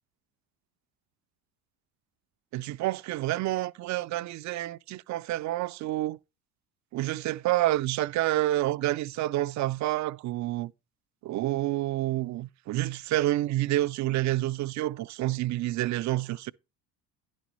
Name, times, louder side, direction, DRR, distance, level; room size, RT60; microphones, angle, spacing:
voice 1, 2.5-6.2 6.9-10.7 11.2-16.5, right 15 dB, 40° right, 0.4 m, -28 dB
11.0 x 6.2 x 4.1 m
hypercardioid pair, 65°, 50 cm